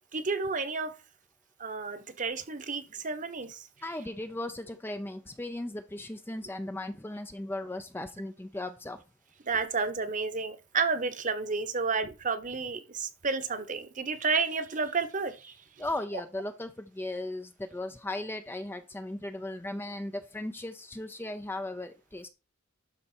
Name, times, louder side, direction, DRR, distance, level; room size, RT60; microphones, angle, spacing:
voice 1, 0.1-0.9 1.6-3.6 9.5-15.5, right 4 dB, 40° right, 1.0 m, -31 dB
voice 2, 3.8-9.0 15.8-22.3, left 1 dB, 10° left, 0.5 m, -37 dB
12.0 x 4.2 x 4.4 m
head